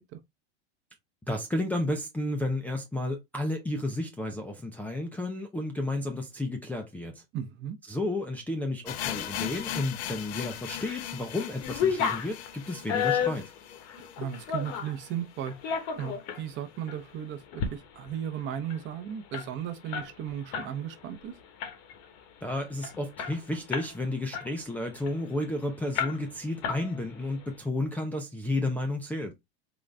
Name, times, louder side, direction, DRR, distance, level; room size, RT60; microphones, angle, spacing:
voice 1, 1.3-7.2 7.9-13.5 22.4-29.3, left 1 dB, 5° left, 0.4 m, -32 dB
voice 2, 7.3-7.8 14.2-15.6 16.0-21.3, right 9 dB, 35° right, 0.7 m, -36 dB
sound 1, 8.9-14.8 15.0-15.1 15.4-15.5 16.1-16.2, left 11 dB, 85° left, 0.6 m, -38 dB
sound 2, 10.5-11.1 11.4-15.0 15.5-16.4 16.9-17.0 17.4-17.7 18.0-18.1 18.4-20.7 21.0-21.2 21.6-22.1 22.5-22.6 22.8-24.0 24.3-25.5 26.0-26.4 26.6-27.3, left 7 dB, 50° left, 1.0 m, -32 dB
3.9 x 2.4 x 3.2 m
supercardioid pair, 135°, 32 cm